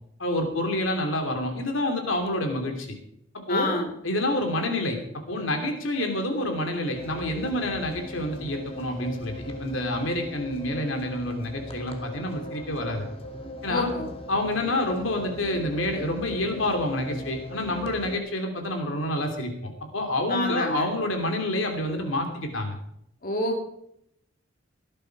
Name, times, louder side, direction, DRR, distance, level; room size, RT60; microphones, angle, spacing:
voice 1, 0.2-2.9 3.3-3.7 4.0-13.1 13.6-13.9 14.3-22.8, left 1 dB, 80° left, 4 dB, 2.9 m, -28 dB
voice 2, 3.5-3.9 13.7-14.1 20.3-20.9 23.2-23.6, left 2 dB, 50° left, 2 dB, 2.6 m, -27 dB
sound 1, 6.9-18.2, left 1 dB, 30° left, 2.2 m, -39 dB
17.5 x 11.0 x 4.8 m, 0.75 s
head